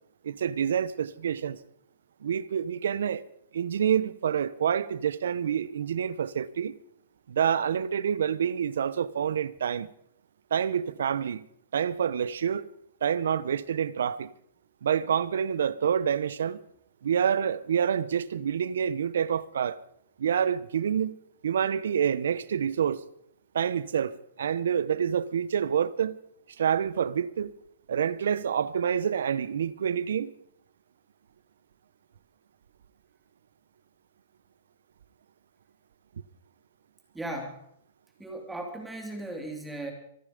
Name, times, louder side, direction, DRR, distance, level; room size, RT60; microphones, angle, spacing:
voice 1, 0.2-1.6 2.2-3.2 3.5-6.8 7.3-9.9 10.5-11.5 11.7-12.7 13.0-14.3 14.8-16.6 17.0-19.8 20.2-21.2 21.4-23.0 23.5-26.2 26.6-27.5 27.9-30.3, right 8 dB, 85° right, 0.8 m, -27 dB
voice 2, 37.1-37.6 38.2-39.9, right 1 dB, 5° right, 2.9 m, -37 dB
24.5 x 10.0 x 5.2 m
hypercardioid pair, 165°, 0 cm